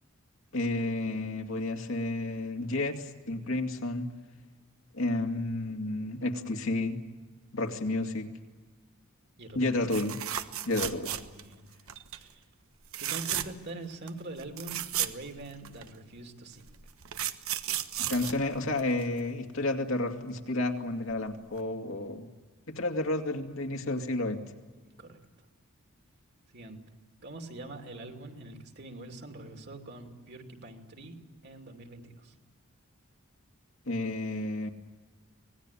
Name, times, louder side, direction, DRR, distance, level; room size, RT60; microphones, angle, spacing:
voice 1, 0.5-4.1 4.9-7.0 7.5-8.3 9.5-10.2 10.7-11.1 18.1-22.3 22.7-24.4 33.9-34.7, left 2 dB, 65° left, 4 dB, 2.4 m, -31 dB
voice 2, 9.4-9.8 11.2-11.7 12.1-12.4 13.0-16.7 25.0-25.2 26.5-26.8 27.2-31.2 31.4-32.3, right 2 dB, 50° right, 4 dB, 2.8 m, -44 dB
sound 1, 9.9-11.5 11.9-12.2 12.9-13.7 14.1-14.2 14.4-15.9 16.7-19.2 21.1-21.3 21.6-21.7, right 11 dB, 75° right, 1.3 m, -34 dB
25.5 x 19.5 x 10.0 m, 1.3 s
head